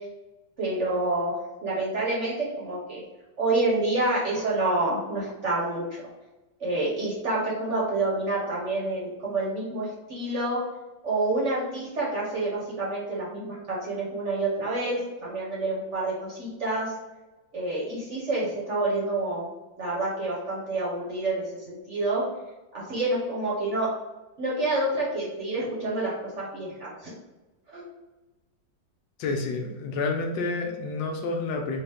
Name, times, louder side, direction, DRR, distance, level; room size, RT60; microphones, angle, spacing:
voice 1, 0.6-3.0 3.4-5.8 6.6-10.6 11.0-16.9 17.5-19.5 19.8-22.2 22.7-23.9 24.4-27.1 27.7-27.8, right 2 dB, 50° right, -5 dB, 0.9 m, -28 dB
voice 2, 29.2-31.8, left 3 dB, 80° left, 3 dB, 1.3 m, -29 dB
3.8 x 2.4 x 3.3 m, 1.1 s
omnidirectional pair, 2.0 m